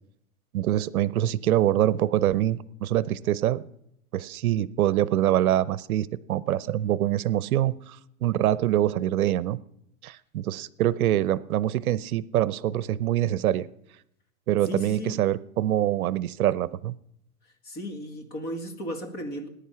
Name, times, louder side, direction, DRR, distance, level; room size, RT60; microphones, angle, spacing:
voice 1, 0.5-3.6 4.1-9.6 10.0-13.7 14.5-16.9, right 12 dB, 70° right, 0.8 m, -25 dB
voice 2, 14.6-15.2 17.6-19.5, left 1 dB, 20° left, 2.0 m, -35 dB
19.0 x 10.0 x 5.7 m
supercardioid pair, 160°, 44 cm